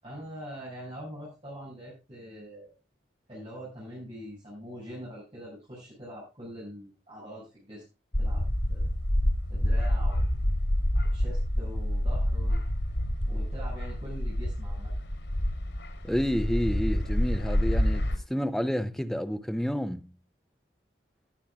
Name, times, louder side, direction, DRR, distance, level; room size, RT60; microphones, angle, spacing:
voice 1, 0.0-2.7 3.3-7.8 8.2-8.4 8.7-8.9 9.5-10.3 11.1-12.6 13.3-15.1, equal, 30° right, 7.0 m, -43 dB
sound 1, 8.1-18.2, equal, 85° left, 3.1 m, -27 dB
voice 2, 16.0-20.1, equal, ahead, 0.6 m, -29 dB
19.5 x 10.0 x 2.4 m
head